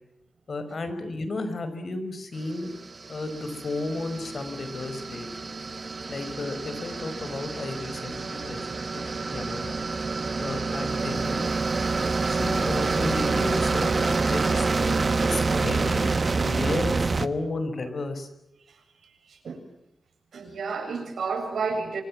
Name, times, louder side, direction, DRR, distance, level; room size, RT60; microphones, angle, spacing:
voice 1, 0.5-2.7 3.1-5.5 6.1-8.6 8.9-9.8 10.4-11.5 12.2-16.1 16.4-18.3, left 2 dB, 50° left, 9 dB, 5.2 m, -33 dB
sound 1, 2.6-17.3, right 4 dB, 40° right, 1.3 m, -27 dB
voice 2, 5.9-6.2 18.7-19.6 20.3-22.0, right 4 dB, 80° right, 6 dB, 7.3 m, -32 dB
29.0 x 25.0 x 7.6 m, 0.80 s
wide cardioid pair, 105°, 0 cm